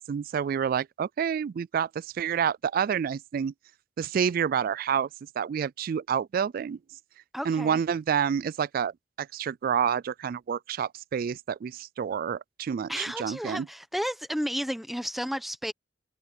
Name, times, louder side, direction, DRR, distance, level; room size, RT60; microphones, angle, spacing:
voice 1, 0.0-3.5 4.0-5.1 5.4-6.8 7.5-13.7, right 7 dB, 55° right, 0.3 m, -28 dB
voice 2, 7.3-7.8 12.9-15.7, equal, ahead, 1.1 m, -32 dB
head